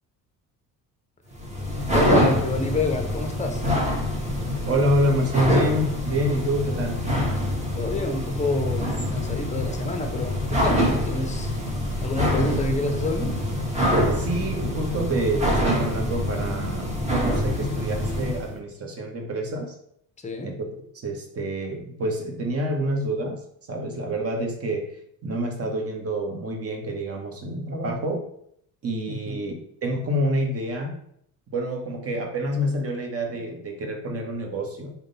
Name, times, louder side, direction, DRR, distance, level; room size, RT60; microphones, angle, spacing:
sound 1, 1.3-18.5, equal, 20° right, 1.0 m, -25 dB
voice 1, 1.9-3.7 7.7-11.5 12.0-13.3 20.2-20.5 29.1-29.4, left 2 dB, 20° left, 5 dB, 0.6 m, -28 dB
voice 2, 4.7-7.0 14.1-19.7 20.4-20.7 20.9-23.4 23.7-24.9 25.2-28.2 28.8-29.5 29.8-30.9 31.5-34.9, equal, 40° right, 3 dB, 0.9 m, -27 dB
3.6 x 2.2 x 3.8 m, 0.70 s
cardioid pair, 95°, 37 cm